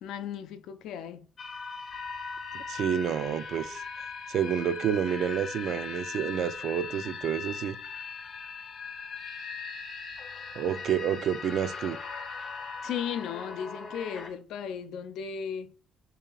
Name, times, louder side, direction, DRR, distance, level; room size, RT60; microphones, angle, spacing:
voice 1, 0.0-1.3 12.8-15.7, left 8 dB, 85° left, 0.4 m, -36 dB
sound 1, 1.4-14.3, left 5 dB, 40° left, 0.6 m, -39 dB
voice 2, 2.5-3.8 4.3-7.8 10.6-12.0, right 9 dB, 60° right, 0.3 m, -29 dB
3.1 x 2.8 x 3.8 m
cardioid pair, 155°, 0 cm